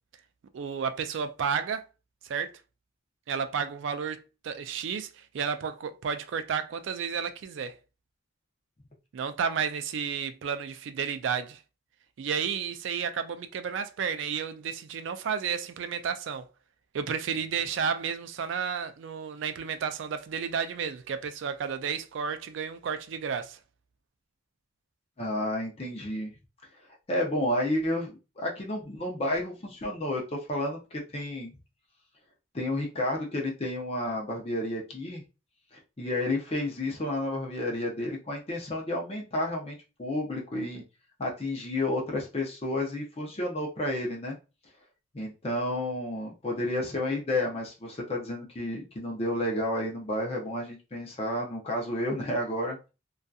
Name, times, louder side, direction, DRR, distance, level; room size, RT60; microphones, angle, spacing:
voice 1, 0.5-1.8 2.2-2.5 3.3-7.8 9.1-11.6 12.2-16.5 16.9-23.6, right 6 dB, 65° right, 0.3 m, -32 dB
voice 2, 25.2-26.3 27.1-31.5 32.5-35.2 36.0-40.8 41.2-44.4 45.1-52.8, left 1 dB, 30° left, 0.6 m, -31 dB
2.6 x 2.3 x 2.3 m
head